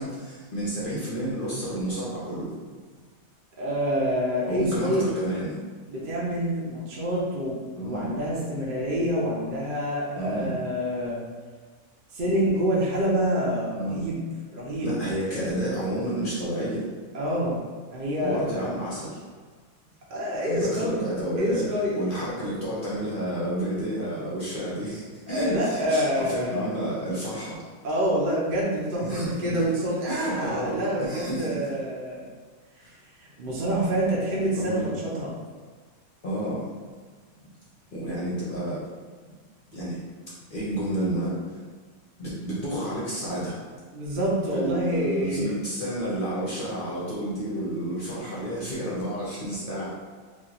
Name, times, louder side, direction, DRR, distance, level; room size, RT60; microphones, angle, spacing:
voice 1, 0.0-2.5 4.5-5.6 7.8-8.1 10.2-10.6 13.8-14.0 14.8-16.9 18.2-19.2 20.5-21.7 21.9-27.6 29.0-29.6 30.1-31.6 32.8-33.0 34.5-34.9 36.2-36.6 37.9-38.8 39.3-39.4 39.7-40.0 40.5-41.6 42.2-43.6 44.5-49.9, right 1 dB, 45° left, -7 dB, 0.8 m, -30 dB
voice 2, 3.6-5.1 5.9-11.2 12.1-14.2 14.5-15.0 17.1-17.6 17.9-18.9 20.1-21.0 21.4-22.0 25.3-26.7 27.8-32.3 33.2-35.3 43.9-45.5, equal, 50° right, -5 dB, 0.7 m, -27 dB
3.0 x 2.4 x 3.9 m, 1.5 s
omnidirectional pair, 1.5 m